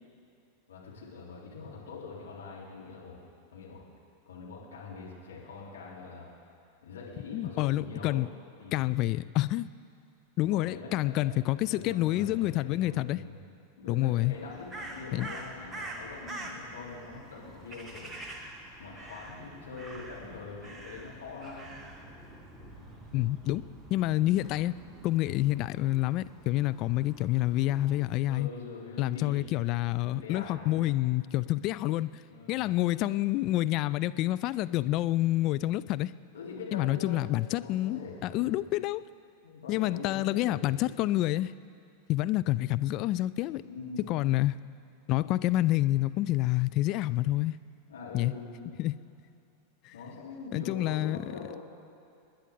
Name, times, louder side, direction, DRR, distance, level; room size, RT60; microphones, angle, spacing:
voice 1, 0.7-3.2 3.5-3.8 4.2-6.3 6.8-8.2 8.6-9.1 10.4-11.3 11.7-13.3 13.8-18.2 18.8-21.8 28.2-29.5 30.1-30.8 32.3-32.7 36.3-37.2 37.6-38.5 39.4-41.0 43.6-44.1 47.9-48.7 49.9-51.6, left 4 dB, 65° left, -5 dB, 3.3 m, -43 dB
voice 2, 7.3-8.3 8.7-9.7 10.4-13.2 13.9-14.3 15.1-15.3 23.1-23.7 23.9-24.7 25.0-28.5 29.0-32.1 32.5-36.1 36.7-39.0 39.7-41.5 42.1-43.6 44.0-44.6 45.1-47.6 48.1-48.3 48.8-48.9 49.9-50.0 50.5-51.2, left 16 dB, 40° left, 15 dB, 0.3 m, -28 dB
Crow, 14.3-28.0, right 1 dB, 15° right, 1.4 m, -46 dB
28.0 x 10.0 x 3.6 m, 2.5 s
figure-of-eight pair, 90°, 0 cm